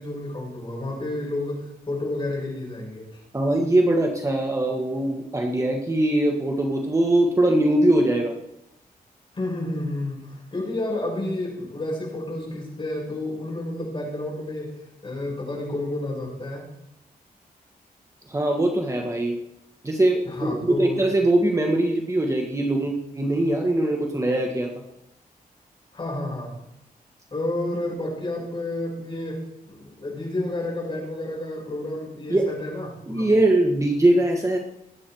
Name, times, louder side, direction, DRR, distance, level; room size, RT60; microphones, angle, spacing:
voice 1, 0.0-3.2 9.3-16.7 20.2-21.1 25.9-26.5 27.3-33.3, left 1 dB, 35° left, -4 dB, 7.2 m, -30 dB
voice 2, 3.3-8.3 18.3-19.4 19.8-24.7 32.3-32.5 33.1-34.6, right 1 dB, 20° right, 1 dB, 1.7 m, -21 dB
20.5 x 8.8 x 4.7 m, 0.85 s
wide cardioid pair, 125°, 15 cm